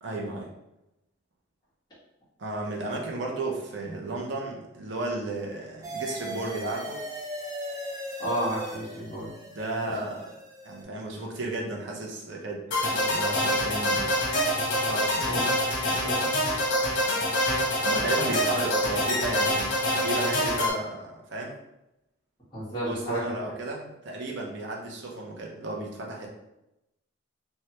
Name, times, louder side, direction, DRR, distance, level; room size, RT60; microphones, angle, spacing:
voice 1, 0.0-0.5 2.4-7.0 9.6-10.3 10.6-14.1 14.8-15.5 15.9-16.0 17.8-21.5 22.8-26.3, right 2 dB, 70° right, -1 dB, 0.6 m, -34 dB
sound 1, 5.8-10.8, equal, 20° right, 0.4 m, -38 dB
voice 2, 8.2-9.3 15.2-15.6 16.0-16.2 22.5-23.3, right 1 dB, 20° left, -10 dB, 1.3 m, -31 dB
sound 2, 12.7-20.7, left 1 dB, 75° left, 0.8 m, -26 dB
3.2 x 2.3 x 2.8 m, 0.90 s
head